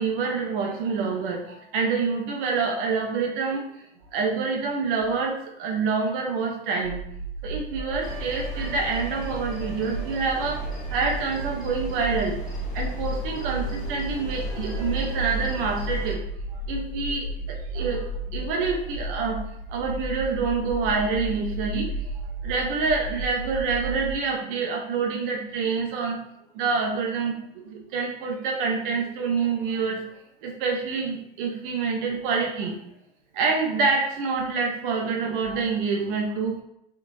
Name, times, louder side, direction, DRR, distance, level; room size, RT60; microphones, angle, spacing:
voice 1, 0.0-3.7 4.1-7.0 7.4-12.4 12.7-16.2 16.5-19.4 19.7-21.9 22.4-26.2 26.5-27.4 27.6-30.0 30.4-32.8 33.3-36.6, right 4 dB, 60° right, 1 dB, 0.6 m, -27 dB
sound 1, 6.8-24.1, right 1 dB, 70° left, 0.6 m, -33 dB
sound 2, 8.0-16.2, equal, 25° left, 1.1 m, -41 dB
3.6 x 2.8 x 2.6 m, 0.77 s
hypercardioid pair, 90°, 30 cm